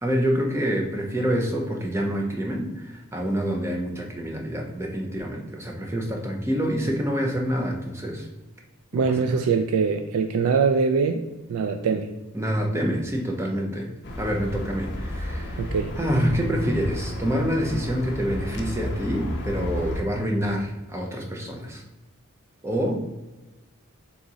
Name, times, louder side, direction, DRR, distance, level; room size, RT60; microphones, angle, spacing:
voice 1, 0.0-8.3 8.9-9.4 12.3-13.9 14.2-15.7 15.9-21.8 22.6-23.1, equal, 10° right, 1 dB, 0.5 m, -27 dB
voice 2, 8.9-12.1 15.6-15.9, right 5 dB, 75° right, 6 dB, 0.3 m, -23 dB
sound 1, 14.0-20.0, left 1 dB, 50° left, 0.5 m, -32 dB
3.6 x 2.9 x 3.8 m, 1.1 s
head